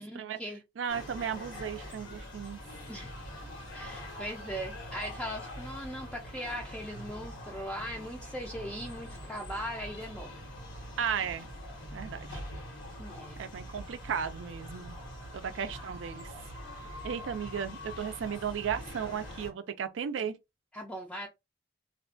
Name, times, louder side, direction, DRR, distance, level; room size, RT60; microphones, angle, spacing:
voice 1, 0.0-0.6 2.9-3.1 3.7-10.4 13.0-13.4 20.7-21.3, equal, 5° left, 0.4 m, -39 dB
voice 2, 0.8-2.6 11.0-11.5 11.9-12.4 13.4-15.0 15.3-16.3 17.0-20.4, right 7 dB, 85° right, 0.4 m, -35 dB
sound 1, 0.9-19.5, equal, 85° left, 1.2 m, -44 dB
2.4 x 2.2 x 2.4 m
head